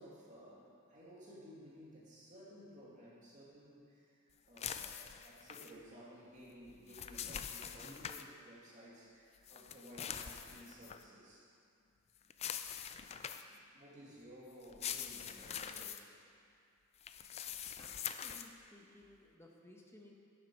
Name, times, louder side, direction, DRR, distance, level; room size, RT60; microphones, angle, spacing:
voice 1, 0.0-11.5 13.5-16.1, equal, 35° right, -6 dB, 2.2 m, -56 dB
sound 1, 4.6-5.7 6.7-8.2 9.4-11.0 12.3-13.6 14.6-16.0 17.0-18.5, left 8 dB, 30° left, 0.3 m, -44 dB
voice 2, 17.8-20.1, left 1 dB, 10° left, -1 dB, 1.0 m, -59 dB
10.5 x 7.6 x 4.5 m, 2.5 s
head